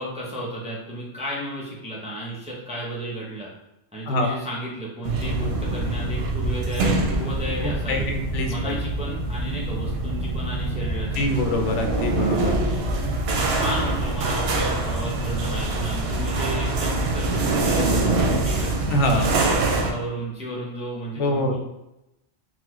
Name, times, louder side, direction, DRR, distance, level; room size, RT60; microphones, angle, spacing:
voice 1, 0.0-3.5 3.9-8.1 8.5-11.4 12.0-12.1 13.2-18.7 19.2-21.6, right 1 dB, 10° right, -5 dB, 0.5 m, -33 dB
voice 2, 4.1-4.4 7.6-8.8 11.1-12.5 18.9-19.4 21.2-21.6, left 1 dB, 80° left, 4 dB, 0.9 m, -24 dB
sound 1, 5.0-19.9, right 2 dB, 65° right, 0.7 m, -24 dB
3.9 x 2.2 x 3.0 m, 0.90 s
omnidirectional pair, 1.2 m